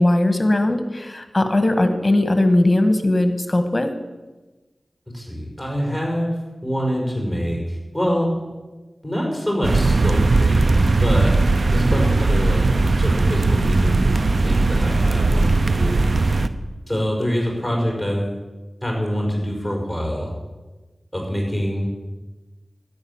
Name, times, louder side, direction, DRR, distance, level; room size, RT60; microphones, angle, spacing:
voice 1, 0.0-3.9, left 1 dB, 30° left, 8 dB, 1.6 m, -19 dB
voice 2, 5.1-6.3 6.6-8.3 9.0-11.4 11.7-12.6 13.0-16.0 16.9-18.3 18.8-20.3 21.1-21.9, equal, 5° right, -1 dB, 5.4 m, -25 dB
sound 1, 9.6-16.5, right 3 dB, 65° right, 0.7 m, -18 dB
13.5 x 10.5 x 7.3 m, 1.2 s
wide cardioid pair, 70°, 0 cm